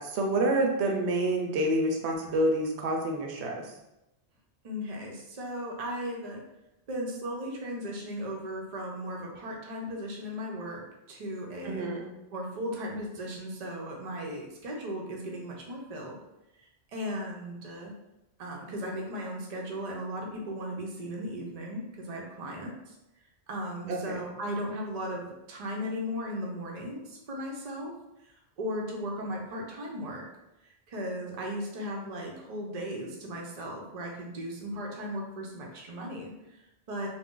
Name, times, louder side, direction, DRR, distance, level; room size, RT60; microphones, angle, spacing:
voice 1, 0.0-3.7 11.6-12.1 23.9-24.0, right 1 dB, 80° right, 1 dB, 0.8 m, -28 dB
voice 2, 4.6-6.4 6.9-10.8 11.1-11.8 12.3-16.2 16.9-17.9 18.4-23.0 23.5-27.9 28.2-30.2 30.6-37.1, equal, 45° right, -1 dB, 0.5 m, -36 dB
2.5 x 2.0 x 3.6 m, 0.91 s
omnidirectional pair, 1.1 m